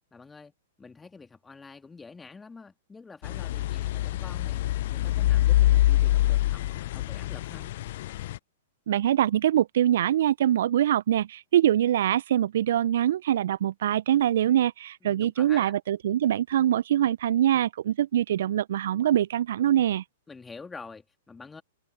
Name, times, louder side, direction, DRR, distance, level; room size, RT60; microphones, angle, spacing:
voice 1, 0.1-0.5 0.8-7.7 15.0-15.7 20.3-21.6, left 4 dB, 10° left, 3.1 m, -47 dB
sound 1, 3.2-8.4, left 15 dB, 55° left, 0.7 m, -25 dB
voice 2, 8.9-20.0, right 11 dB, 60° right, 0.6 m, -24 dB
figure-of-eight pair, 110°, 0 cm